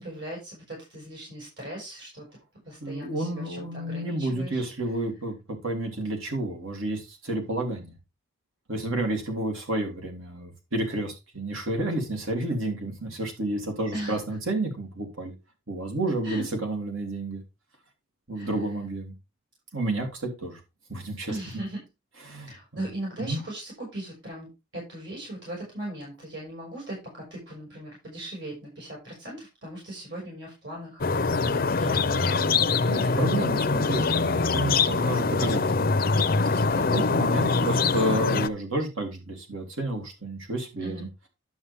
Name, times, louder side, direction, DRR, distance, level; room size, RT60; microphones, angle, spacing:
voice 1, 0.0-2.2 2.6-4.6 13.9-14.2 16.2-16.5 18.3-18.6 21.3-21.8 22.4-33.5 34.0-34.3 36.7-37.0 40.8-41.1, right 1 dB, 60° right, 5.9 m, -39 dB
voice 2, 2.8-7.9 8.7-15.3 15.7-17.4 18.3-19.1 19.7-20.6 20.9-21.4 22.2-22.8 23.3-23.4 31.3-31.6 32.9-36.4 36.9-41.1, right 1 dB, 80° right, 3.2 m, -30 dB
sound 1, 31.0-38.5, left 4 dB, 45° left, 0.6 m, -24 dB
11.5 x 6.2 x 3.5 m
head